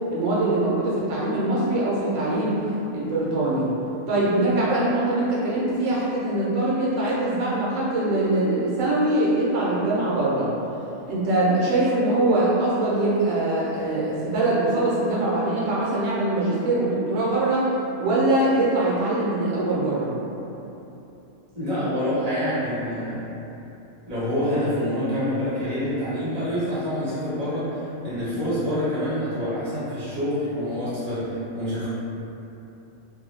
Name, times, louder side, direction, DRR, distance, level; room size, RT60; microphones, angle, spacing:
voice 1, 0.1-2.6 2.9-3.7 4.1-10.5 11.1-17.7 18.0-20.1, right 2 dB, 80° right, -7 dB, 1.0 m, -23 dB
voice 2, 21.5-23.3 24.1-31.9, equal, 35° right, -12 dB, 1.0 m, -26 dB
2.6 x 2.0 x 3.1 m, 2.9 s
omnidirectional pair, 1.3 m